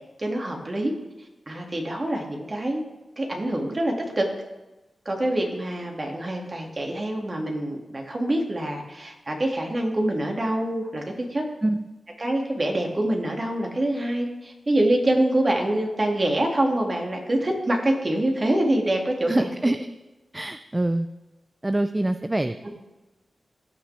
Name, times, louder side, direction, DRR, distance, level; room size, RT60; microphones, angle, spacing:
voice 1, 0.2-0.9 1.5-2.8 3.2-4.3 5.1-11.4 12.2-19.5, right 1 dB, 40° right, 1 dB, 2.2 m, -25 dB
voice 2, 19.3-19.8 20.3-21.1 21.6-22.6, right 1 dB, 25° right, 10 dB, 0.4 m, -24 dB
17.5 x 6.1 x 3.4 m, 1.1 s
cardioid pair, 50°, 0 cm